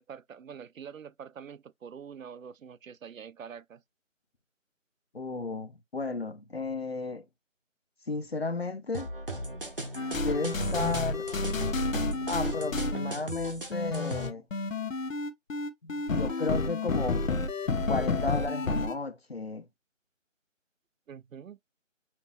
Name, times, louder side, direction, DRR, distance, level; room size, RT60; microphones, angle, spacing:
voice 1, 0.0-3.8 21.1-21.6, right 7 dB, 85° right, 0.5 m, -45 dB
voice 2, 5.1-7.2 8.1-9.1 10.2-11.3 12.3-14.4 15.8-17.2 17.9-19.6, left 3 dB, 50° left, 0.5 m, -33 dB
sound 1, 8.9-14.3, right 1 dB, 45° right, 0.7 m, -38 dB
sound 2, 9.9-18.9, left 3 dB, 80° left, 0.8 m, -30 dB
5.7 x 2.1 x 2.9 m
figure-of-eight pair, 175°, 39 cm